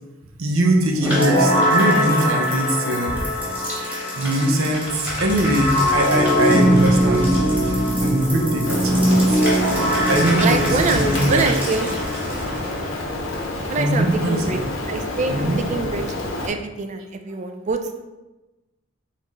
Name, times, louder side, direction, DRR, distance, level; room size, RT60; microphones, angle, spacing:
voice 1, 0.4-3.4 4.1-7.3 7.7-9.4 10.0-11.4 13.8-14.6 15.3-15.6, right 1 dB, 80° right, 1 dB, 0.7 m, -22 dB
sound 1, 1.0-12.9, equal, 10° right, 1.4 m, -21 dB
Rain, 8.7-16.5, left 1 dB, 75° left, 0.8 m, -28 dB
voice 2, 10.4-11.9 13.7-14.6 14.9-18.0, right 4 dB, 35° right, 6 dB, 0.4 m, -25 dB
4.1 x 3.7 x 3.1 m, 1.1 s
head